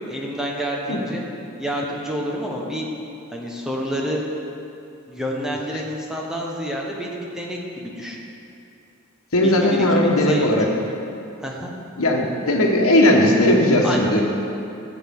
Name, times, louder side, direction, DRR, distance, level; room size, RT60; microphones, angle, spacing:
voice 1, 0.1-1.2 1.6-2.9 3.3-4.2 5.1-8.2 9.4-9.6 9.9-10.8 11.4-11.7 13.8-14.2, equal, 5° right, -2 dB, 1.1 m, -28 dB
voice 2, 9.3-10.7 12.0-14.2, left 1 dB, 85° left, 1 dB, 1.3 m, -17 dB
14.5 x 8.0 x 3.7 m, 2.7 s
head